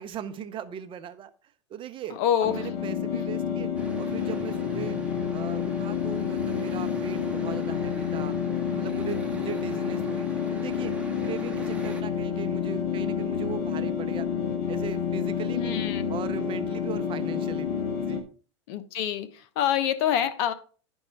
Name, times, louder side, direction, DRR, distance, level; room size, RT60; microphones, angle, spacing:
voice 1, 0.0-1.3 1.7-3.7 4.0-5.0 5.3-8.3 8.7-10.9 11.2-14.3 14.7-15.8 16.1-18.3, right 8 dB, 35° right, 0.7 m, -38 dB
voice 2, 2.1-2.7 3.1-3.3 15.5-16.1 18.7-20.5, left 10 dB, 60° left, 0.9 m, -26 dB
sound 1, 2.4-18.2, left 7 dB, 45° left, 1.6 m, -29 dB
sound 2, 3.8-12.0, right 2 dB, 10° right, 1.4 m, -43 dB
10.5 x 4.6 x 4.5 m
hypercardioid pair, 95°, 15 cm